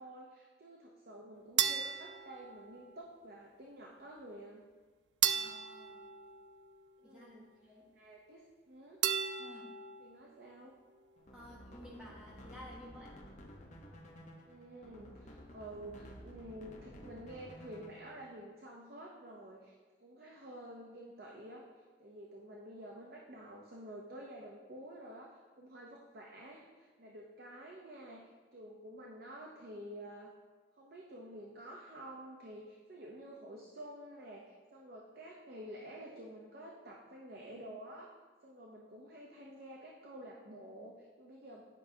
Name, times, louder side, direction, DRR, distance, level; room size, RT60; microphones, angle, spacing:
voice 1, 0.0-4.6 7.0-7.5 8.0-9.0 10.0-10.7 14.5-19.7 20.0-21.7 22.0-30.3 30.8-38.1 38.4-41.6, right 1 dB, 60° right, -1 dB, 0.7 m, -50 dB
sound 1, 1.6-3.1 5.2-7.1 9.0-10.2, right 9 dB, 75° right, 0.3 m, -35 dB
voice 2, 5.3-6.1 7.0-7.9 9.4-9.7 11.3-13.1, left 1 dB, 5° right, -6 dB, 1.2 m, -53 dB
sound 2, 11.2-18.3, equal, 40° left, 0.8 m, -53 dB
9.1 x 5.5 x 2.8 m, 1.4 s
head